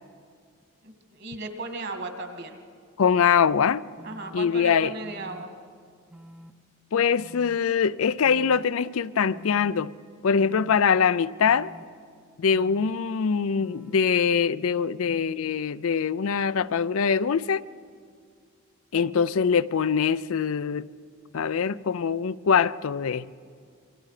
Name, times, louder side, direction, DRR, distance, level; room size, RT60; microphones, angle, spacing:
voice 1, 0.8-2.6 4.0-5.5, right 2 dB, 50° right, 2.1 m, -36 dB
voice 2, 3.0-3.9 4.3-4.9 6.9-9.9 10.2-11.7 12.4-17.6 18.9-20.9 21.3-23.3, left 6 dB, 70° left, 0.4 m, -23 dB
sound 1, 4.0-4.4 5.0-5.4 6.1-6.5 7.2-7.6 8.2-8.6 9.3-9.7 10.4-10.8 11.4-11.8 12.5-12.9 13.6-14.0, equal, 5° right, 0.6 m, -47 dB
27.5 x 24.0 x 4.9 m
head